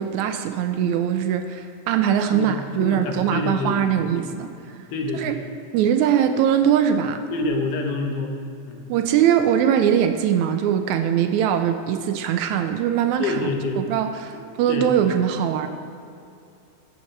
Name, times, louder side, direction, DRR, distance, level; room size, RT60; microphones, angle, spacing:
voice 1, 0.0-4.5 5.1-5.4 5.7-7.2 8.9-13.5 13.8-15.7, right 9 dB, 80° right, 7 dB, 1.8 m, -21 dB
voice 2, 2.3-4.2 4.9-5.4 7.3-8.3 8.7-8.9 13.2-13.8 14.7-14.9, left 3 dB, 90° left, 3 dB, 2.6 m, -27 dB
15.0 x 7.1 x 3.2 m, 2.6 s
omnidirectional pair, 3.5 m